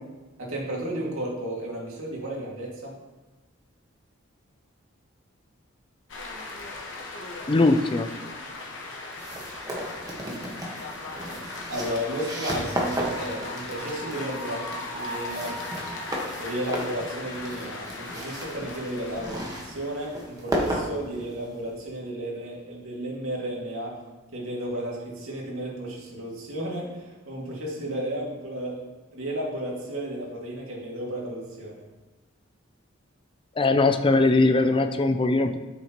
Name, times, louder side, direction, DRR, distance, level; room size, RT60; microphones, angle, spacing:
voice 1, 0.4-3.0 11.7-15.6 16.4-24.0 24.3-28.9 29.1-31.8, right 1 dB, 90° right, -3 dB, 2.2 m, -33 dB
sound 1, 6.1-20.4, left 2 dB, 65° left, 1.2 m, -38 dB
voice 2, 7.5-8.1 33.6-35.6, left 2 dB, 25° left, 8 dB, 0.4 m, -20 dB
sound 2, 9.2-21.7, right 1 dB, 20° right, 1.3 m, -34 dB
9.4 x 8.0 x 3.0 m, 1.2 s
head